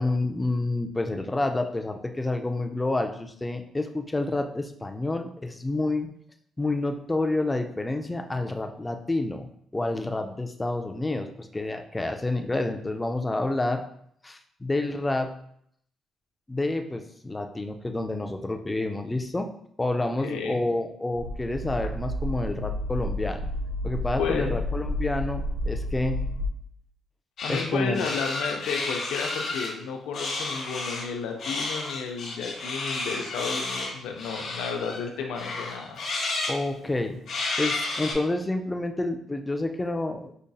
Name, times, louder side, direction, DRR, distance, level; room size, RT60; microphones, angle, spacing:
voice 1, 0.0-6.1 6.6-13.9 14.2-15.4 16.5-19.5 19.8-23.5 23.8-26.3 27.5-28.1 36.5-37.2 37.6-40.3, left 2 dB, 15° left, 5 dB, 0.3 m, -29 dB
voice 2, 19.9-20.6 24.2-24.5 27.4-36.0, left 5 dB, 90° left, 3 dB, 0.5 m, -32 dB
sound 1, 21.1-26.5, left 1 dB, 50° right, 0.6 m, -31 dB
sound 2, 27.4-27.7 27.9-29.7 30.1-31.1 31.4-35.0 35.3-36.6 37.3-38.1, left 2 dB, 65° left, 1.1 m, -31 dB
5.0 x 2.6 x 2.3 m, 0.68 s
cardioid pair, 90°, 0 cm